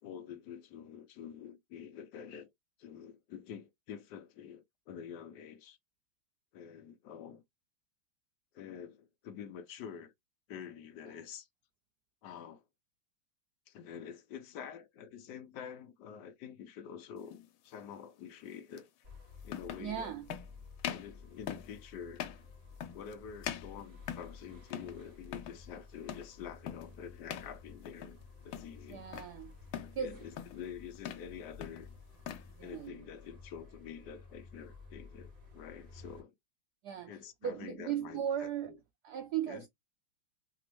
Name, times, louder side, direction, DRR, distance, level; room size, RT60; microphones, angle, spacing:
voice 1, 0.0-2.5 2.8-5.8 6.5-7.4 8.5-10.1 10.5-11.5 12.2-12.6 13.7-17.4 17.6-18.9 19.4-20.1 20.9-22.3 22.9-29.0 29.8-31.9 32.6-36.3 37.1-38.8 39.5-39.6, left 8 dB, 70° left, 1.1 m, -47 dB
sound 1, 17.3-17.5 18.8-18.9 19.5-19.9 20.3-20.5 20.8-21.1 21.5-21.8 22.2-22.5 22.8-23.1 23.4-24.4 24.7-25.0 25.2-25.6 26.1-26.3 26.7-26.9 27.3-27.5 27.9-28.2 28.5-29.3 29.7-30.0 30.4-30.7 31.0-31.3 31.6-32.5, left 10 dB, 85° left, 1.5 m, -42 dB
sound 2, 19.0-36.2, left 4 dB, 25° right, 1.7 m, -53 dB
voice 2, 19.8-20.3 28.9-29.5 29.9-30.2 32.5-33.0 36.8-38.7 39.0-39.7, right 9 dB, 80° right, 0.9 m, -37 dB
3.4 x 3.0 x 3.0 m
omnidirectional pair, 2.3 m